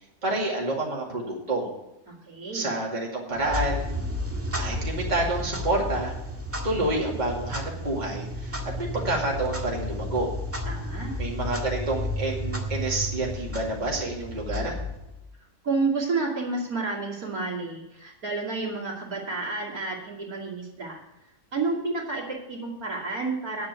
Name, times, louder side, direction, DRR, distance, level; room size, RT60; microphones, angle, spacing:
voice 1, 0.2-1.7 2.5-3.9 4.6-6.2 6.6-10.3 11.2-14.8, right 2 dB, 25° right, -2 dB, 2.5 m, -28 dB
voice 2, 2.1-2.7 10.6-11.1 15.6-21.0 21.5-23.7, right 3 dB, 60° right, -2 dB, 3.1 m, -30 dB
Clock, 3.3-15.3, left 1 dB, 10° right, 1.6 m, -32 dB
10.0 x 7.5 x 8.1 m, 0.94 s
omnidirectional pair, 1.7 m